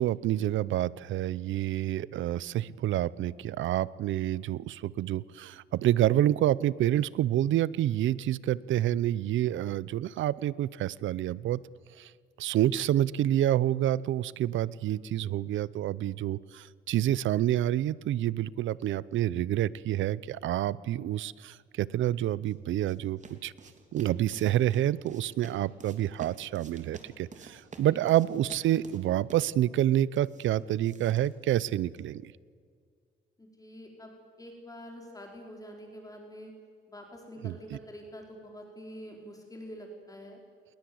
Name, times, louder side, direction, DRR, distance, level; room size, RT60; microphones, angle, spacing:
voice 1, 0.0-11.6 12.0-12.1 12.4-23.5 23.9-32.3 37.4-37.8, right 12 dB, 75° right, 21 dB, 0.7 m, -28 dB
sound 1, 22.1-32.1, right 4 dB, 40° right, 3.4 m, -52 dB
voice 2, 33.4-36.5 36.9-40.4, equal, 15° left, 1 dB, 4.7 m, -46 dB
28.5 x 21.0 x 7.9 m, 2.1 s
cardioid pair, 90°, 20 cm